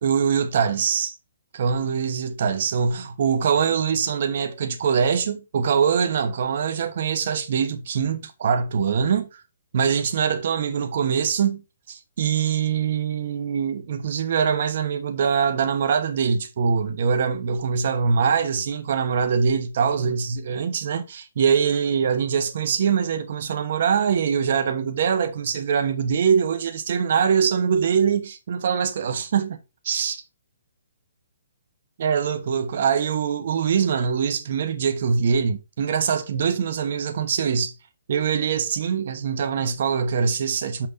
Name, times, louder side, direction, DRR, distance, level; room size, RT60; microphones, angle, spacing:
voice 1, 0.0-1.1 1.5-9.4 9.7-11.6 11.9-29.6 29.8-30.2 32.0-37.7 38.1-40.9, right 6 dB, 50° right, 1.1 m, -23 dB
6.4 x 6.0 x 4.0 m
hypercardioid pair, 165°, 0 cm